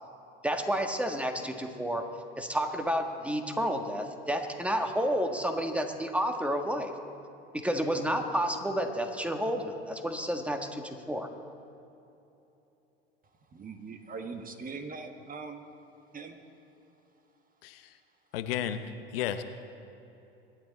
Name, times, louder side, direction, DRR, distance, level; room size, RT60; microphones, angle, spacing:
voice 1, 0.4-2.0 2.4-6.9 7.5-11.3, equal, 5° right, 5 dB, 1.6 m, -30 dB
voice 2, 13.5-15.6 16.1-16.4, right 4 dB, 30° right, 6 dB, 1.6 m, -41 dB
voice 3, 18.3-18.8 19.1-19.4, left 10 dB, 75° left, 10 dB, 0.8 m, -32 dB
24.0 x 10.0 x 4.2 m, 2.9 s
hypercardioid pair, 75°, 29 cm